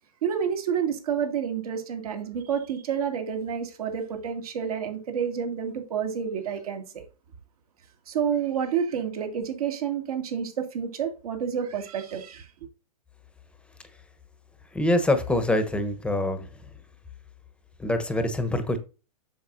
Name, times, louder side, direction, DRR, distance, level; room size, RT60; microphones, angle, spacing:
voice 1, 0.2-7.0 8.1-12.5, right 7 dB, 65° right, 2.4 m, -29 dB
voice 2, 14.7-16.5 17.8-18.8, left 1 dB, 5° left, 1.0 m, -24 dB
7.7 x 6.8 x 2.6 m
hypercardioid pair, 125°, 20 cm